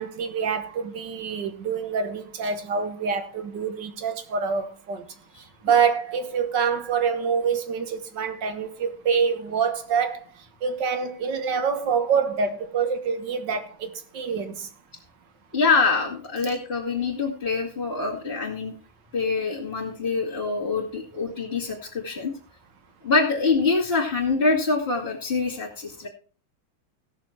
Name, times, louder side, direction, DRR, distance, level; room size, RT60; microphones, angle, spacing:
voice 1, 0.0-5.0 5.6-10.2 10.6-14.7, right 6 dB, 65° right, 1.8 m, -26 dB
voice 2, 5.3-5.7 15.5-18.7 19.1-22.3 23.0-26.1, left 4 dB, 30° left, 2.5 m, -25 dB
16.5 x 6.8 x 4.4 m
omnidirectional pair, 2.2 m